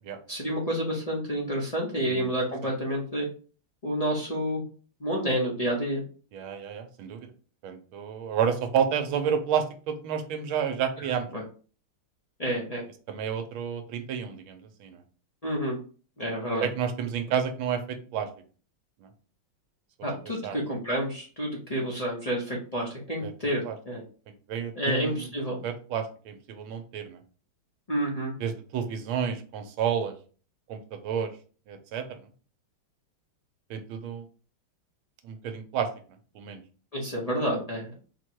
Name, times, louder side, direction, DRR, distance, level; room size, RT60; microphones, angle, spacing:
voice 1, 0.3-3.3 3.8-4.6 5.0-6.0 11.0-11.4 12.4-12.8 15.4-15.8 16.2-16.7 20.0-24.0 24.7-25.6 27.9-28.3 36.9-37.9, equal, 40° left, -4 dB, 0.5 m, -29 dB
voice 2, 6.3-7.3 7.6-11.3 13.1-15.0 16.6-18.3 19.0-19.1 20.4-20.6 23.2-23.3 23.6-23.7 24.3-25.3 25.6-27.2 28.4-30.1 30.7-31.3 31.7-32.0 33.7-34.3 35.2-35.9 36.3-36.6, right 8 dB, 85° right, 7 dB, 1.5 m, -30 dB
4.5 x 2.2 x 4.5 m, 0.38 s
omnidirectional pair, 2.3 m